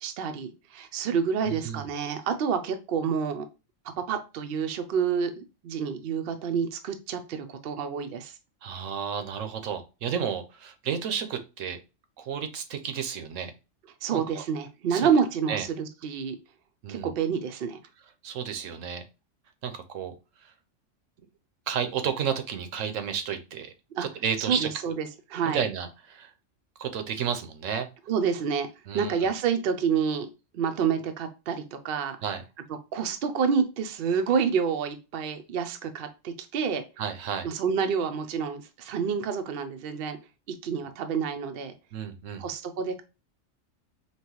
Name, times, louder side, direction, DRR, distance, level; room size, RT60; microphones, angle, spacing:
voice 1, 0.0-3.4 4.1-8.4 14.0-16.4 16.9-17.8 23.9-24.1 24.5-25.6 28.1-28.7 28.9-30.3 30.5-32.2 32.9-36.8 37.4-40.2 40.6-41.7 42.4-43.0, right 6 dB, 55° right, 7 dB, 0.7 m, -28 dB
voice 2, 1.5-1.9 8.6-11.8 12.2-13.5 14.1-14.4 14.9-15.1 15.5-15.6 16.8-17.1 18.2-19.0 19.6-20.1 20.4-20.5 21.7-23.7 24.0-24.9 25.5-26.3 26.8-27.9 28.9-29.3 32.2-32.4 37.0-37.5 41.9-42.5, right 7 dB, 80° right, 8 dB, 1.1 m, -32 dB
4.7 x 3.0 x 3.0 m, 0.29 s
omnidirectional pair, 1.3 m